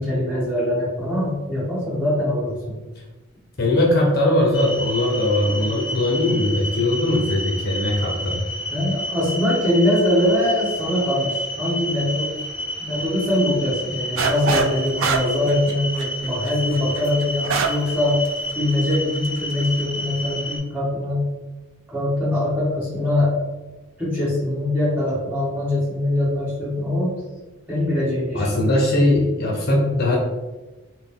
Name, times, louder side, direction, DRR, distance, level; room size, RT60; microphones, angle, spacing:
voice 1, 0.0-2.8 5.5-5.6 8.7-12.3 12.8-18.2 18.5-21.2 21.9-23.4 24.0-27.1 27.7-28.5, left 1 dB, 10° right, -9 dB, 1.4 m, -22 dB
voice 2, 3.6-8.5 28.3-30.2, left 1 dB, 45° left, -3 dB, 0.6 m, -20 dB
sound 1, 4.5-20.6, left 1 dB, 20° left, 1.0 m, -30 dB
sound 2, 14.2-14.7 15.0-17.9 18.3-18.4 18.9-19.3, right 5 dB, 75° right, 0.3 m, -23 dB
3.9 x 2.1 x 3.6 m, 1.2 s
head